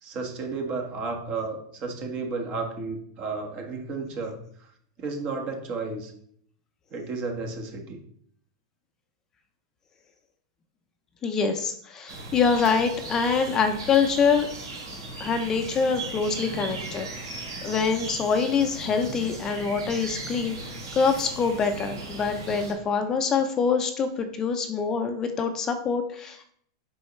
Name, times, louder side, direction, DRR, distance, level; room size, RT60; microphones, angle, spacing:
voice 1, 0.0-4.4 5.0-6.1 6.9-8.0, right 4 dB, 40° right, 2 dB, 1.5 m, -32 dB
voice 2, 11.2-14.5 15.2-17.1 17.3-20.6 20.9-26.5, left 5 dB, 25° left, 6 dB, 0.6 m, -25 dB
sound 1, 12.1-22.7, right 2 dB, 90° right, 3.1 m, -37 dB
7.9 x 5.4 x 3.2 m, 0.64 s
supercardioid pair, 135°, 2 cm